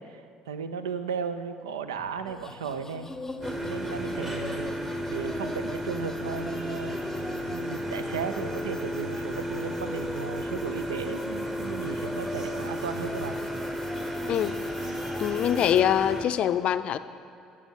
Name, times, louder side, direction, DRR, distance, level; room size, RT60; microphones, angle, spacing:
voice 1, 0.0-3.1 3.6-4.7 5.1-7.0 7.5-13.4, right 6 dB, 75° right, 10 dB, 0.5 m, -35 dB
sound 1, 1.9-8.3, left 3 dB, 50° right, 3.0 m, -51 dB
sound 2, 2.3-15.8, left 2 dB, 15° left, 0.7 m, -42 dB
sound 3, 3.4-16.2, equal, 25° right, 1.4 m, -33 dB
voice 2, 15.2-17.0, left 10 dB, 50° left, 12 dB, 0.4 m, -24 dB
14.5 x 6.9 x 5.1 m, 2.4 s
figure-of-eight pair, 55°, 2 cm